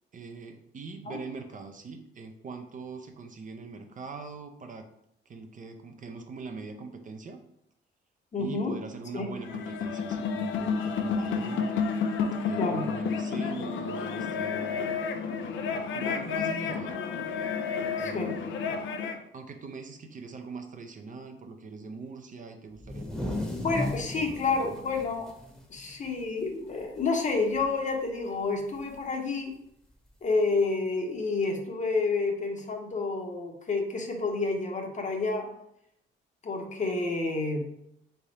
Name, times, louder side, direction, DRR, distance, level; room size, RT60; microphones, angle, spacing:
voice 1, 0.1-4.9 5.3-7.4 8.4-11.7 12.4-15.0 15.9-17.2 18.0-18.4 19.3-24.8, right 4 dB, 40° right, 5 dB, 0.6 m, -42 dB
voice 2, 8.3-8.7 9.1-9.3 12.6-12.8 18.0-18.3 23.6-25.3 25.7-29.5 30.2-35.5 36.4-37.6, left 3 dB, 40° left, 3 dB, 0.9 m, -29 dB
sound 1, 9.4-19.2, left 5 dB, 75° left, 0.5 m, -31 dB
sound 2, 22.8-26.5 26.8-27.0 27.3-27.8 28.9-29.0 30.1-30.2, left 1 dB, ahead, 1.0 m, -36 dB
3.6 x 3.5 x 4.1 m, 0.77 s
cardioid pair, 90°, 20 cm